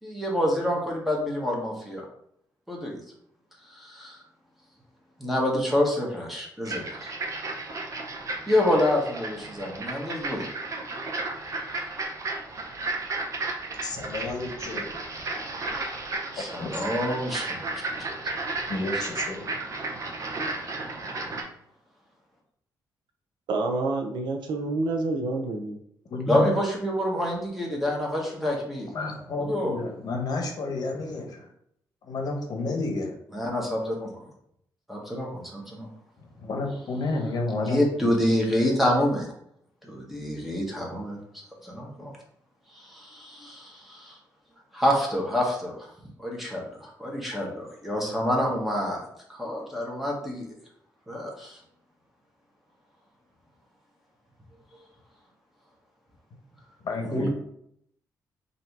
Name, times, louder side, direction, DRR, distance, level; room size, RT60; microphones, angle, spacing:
voice 1, 0.0-2.0 2.7-3.0 3.7-4.2 5.2-7.1 8.5-10.5 11.7-11.8 16.3-17.7 26.3-28.9 29.4-29.7 33.3-34.1 34.9-35.9 37.7-39.3 39.8-41.2 41.6-42.1 42.7-44.2 44.7-45.9 46.2-49.0 49.3-50.4 51.1-51.6 57.1-57.3, left 1 dB, ahead, -2 dB, 1.3 m, -27 dB
sound 1, 6.7-21.4, right 3 dB, 45° right, 0.8 m, -33 dB
voice 2, 13.8-15.0 16.6-16.8 18.7-19.5 26.1-26.5 28.9-31.5 32.0-33.1 36.2-38.1 56.8-57.3, left 2 dB, 60° left, 2 dB, 0.9 m, -31 dB
voice 3, 23.5-25.8, right 3 dB, 75° right, 3 dB, 0.7 m, -28 dB
3.2 x 2.7 x 4.6 m, 0.73 s
cardioid pair, 95°, 8 cm